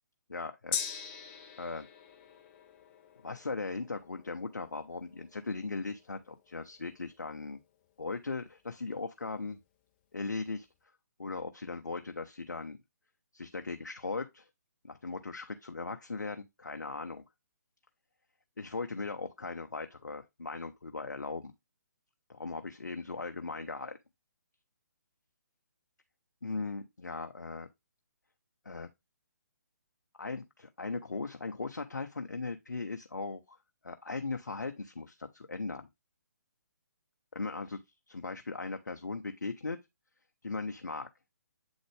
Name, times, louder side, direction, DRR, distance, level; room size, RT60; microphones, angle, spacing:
voice 1, 0.3-0.8 1.6-1.9 3.2-7.6 8.0-9.6 10.1-10.7 11.2-12.8 13.3-14.5 14.8-17.2 18.6-21.5 22.3-24.0 26.4-27.7 28.6-28.9 30.2-33.6 33.8-35.9 37.4-37.8 38.1-39.8 40.4-41.1, left 3 dB, 80° left, 0.7 m, -38 dB
Gong, 0.7-8.5 8.8-8.9, left 8 dB, 30° left, 1.1 m, -44 dB
8.0 x 3.9 x 3.2 m
figure-of-eight pair, 140°, 10 cm